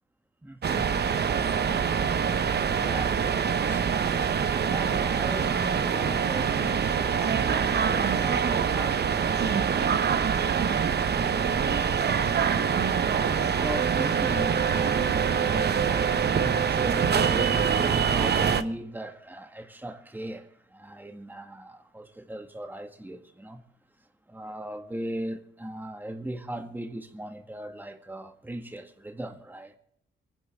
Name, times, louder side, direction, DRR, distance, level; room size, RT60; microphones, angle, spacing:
voice 1, 0.4-0.9 2.7-3.4 3.6-3.9 4.4-12.5 13.3-23.6 24.3-29.7, right 1 dB, 10° right, 1.6 m, -38 dB
sound 1, 0.6-18.6, right 7 dB, 55° right, 0.9 m, -25 dB
24.5 x 10.5 x 3.5 m
cardioid pair, 70°, 20 cm